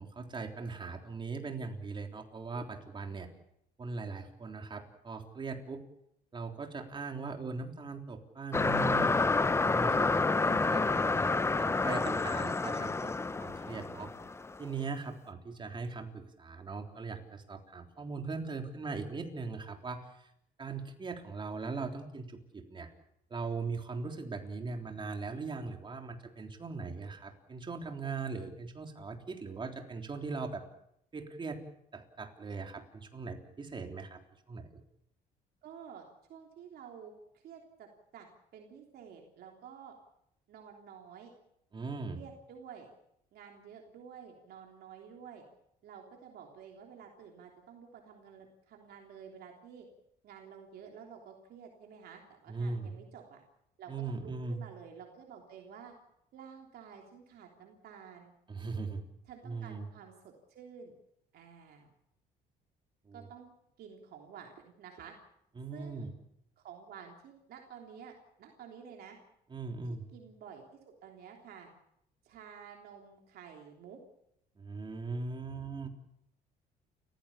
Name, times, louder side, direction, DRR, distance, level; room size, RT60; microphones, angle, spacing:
voice 1, 0.0-3.3 3.8-5.8 6.3-13.1 13.4-14.1 14.6-20.3 20.6-22.9 23.3-30.6 31.1-31.6 31.9-34.2 34.5-34.8 41.7-42.2 52.5-52.9 53.9-54.6 58.5-59.0 59.4-59.9 63.1-63.2 65.6-66.1 69.5-70.0 74.6-75.9, right 4 dB, 30° right, 4 dB, 3.5 m, -40 dB
sound 1, 8.5-14.6, left 3 dB, 15° left, 0.8 m, -29 dB
voice 2, 35.6-37.1 37.4-37.9 38.1-38.3 38.5-39.9 40.5-41.3 42.1-42.9 43.3-45.5 45.8-49.9 50.2-53.4 53.8-55.9 56.3-58.3 59.3-60.9 61.3-61.9 63.1-63.5 63.8-65.1 65.7-66.1 66.6-69.2 69.8-71.7 72.2-74.0, right 7 dB, 65° right, 1 dB, 3.4 m, -51 dB
30.0 x 15.5 x 7.2 m, 0.78 s
cardioid pair, 110°, 17 cm